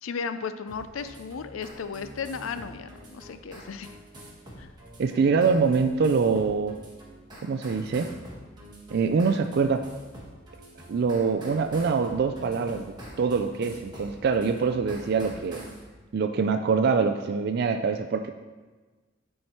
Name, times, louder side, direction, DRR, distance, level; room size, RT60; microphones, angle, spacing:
voice 1, 0.0-3.9 4.6-4.7, left 5 dB, 90° left, 11 dB, 0.4 m, -35 dB
sound 1, 0.7-15.8, right 1 dB, 20° right, 1.5 m, -46 dB
voice 2, 5.0-6.8 7.4-8.1 8.9-9.9 10.9-15.6 16.1-18.3, right 5 dB, 55° right, 7 dB, 0.3 m, -24 dB
9.5 x 4.5 x 4.3 m, 1.3 s
head